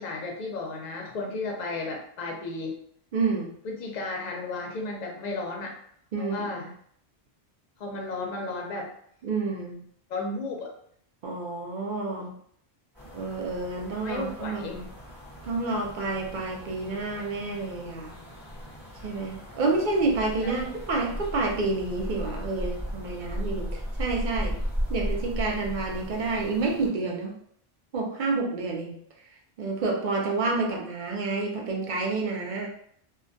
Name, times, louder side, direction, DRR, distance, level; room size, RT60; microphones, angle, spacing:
voice 1, 0.0-2.8 3.6-5.7 6.2-6.7 7.8-8.9 10.1-10.7 14.0-14.8 20.4-20.6, left 3 dB, 55° left, 1 dB, 0.5 m, -34 dB
voice 2, 3.1-3.5 6.1-6.7 9.2-9.8 11.2-12.3 13.1-14.8 15.4-18.1 19.0-24.6 24.9-27.3 27.9-29.0 29.6-32.7, right 3 dB, 60° right, 0 dB, 0.6 m, -29 dB
sound 1, 12.9-26.9, equal, ahead, 1.0 m, -36 dB
2.2 x 2.2 x 2.6 m, 0.65 s
omnidirectional pair, 1.1 m